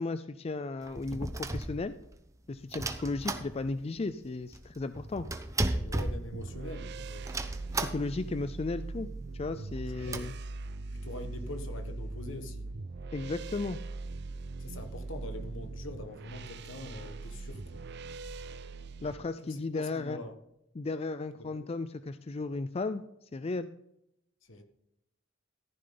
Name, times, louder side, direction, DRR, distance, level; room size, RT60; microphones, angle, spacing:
voice 1, 0.0-1.9 2.5-5.3 7.7-9.1 9.3-10.3 13.1-13.8 19.0-20.2 20.7-23.0 23.3-23.7, left 3 dB, 30° left, 0.4 m, -35 dB
sound 1, 0.8-2.2 2.7-4.0 4.2-4.3 4.5-6.8 7.3-8.3 8.7-8.8 9.0-9.1 9.6-10.2, right 2 dB, 15° right, 0.9 m, -35 dB
voice 2, 5.8-7.3 10.0-10.3 11.0-12.7 14.6-17.8 19.4-20.3 24.5-24.6, left 1 dB, 70° left, 1.5 m, -43 dB
sound 2, 6.3-19.1, right 3 dB, 55° right, 0.6 m, -41 dB
14.5 x 10.0 x 3.9 m
head